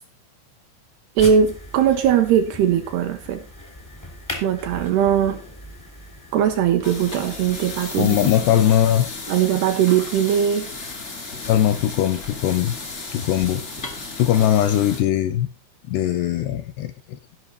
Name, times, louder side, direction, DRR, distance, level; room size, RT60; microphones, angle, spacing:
sound 1, 1.2-8.4, left 1 dB, 15° left, 0.6 m, -38 dB
voice 1, 1.2-3.4 4.4-5.4 6.3-8.2 8.5-8.6 9.3-10.7, right 9 dB, 80° right, 6 dB, 2.5 m, -20 dB
sound 2, 6.8-15.0, left 3 dB, 45° left, 0.8 m, -34 dB
voice 2, 8.0-9.1 11.5-12.8 13.1-13.6 14.2-15.5 15.9-17.4, left 11 dB, 85° left, 11 dB, 2.4 m, -20 dB
16.0 x 6.1 x 4.2 m, 0.36 s
omnidirectional pair, 5.4 m